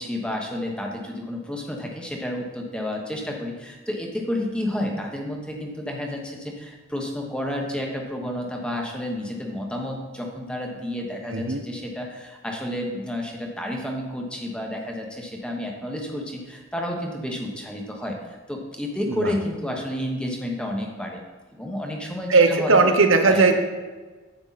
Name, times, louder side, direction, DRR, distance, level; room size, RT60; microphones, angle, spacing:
voice 1, 0.0-21.2 21.5-22.8 23.2-23.5, left 1 dB, 5° left, 1 dB, 1.1 m, -30 dB
voice 2, 11.3-11.6 19.1-19.3 22.3-23.5, right 3 dB, 85° right, 5 dB, 1.0 m, -18 dB
9.9 x 7.9 x 4.1 m, 1.3 s
head